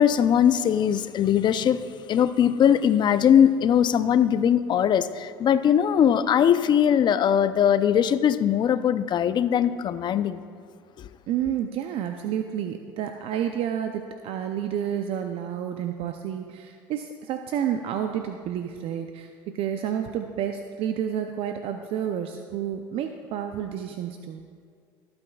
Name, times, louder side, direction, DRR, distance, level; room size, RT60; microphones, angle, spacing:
voice 1, 0.0-1.8 2.1-10.4 11.0-11.1, left 9 dB, 45° left, 0.6 m, -20 dB
voice 2, 11.3-24.4, right 9 dB, 60° right, 0.6 m, -30 dB
20.5 x 8.8 x 2.4 m
hypercardioid pair, 80°, 11 cm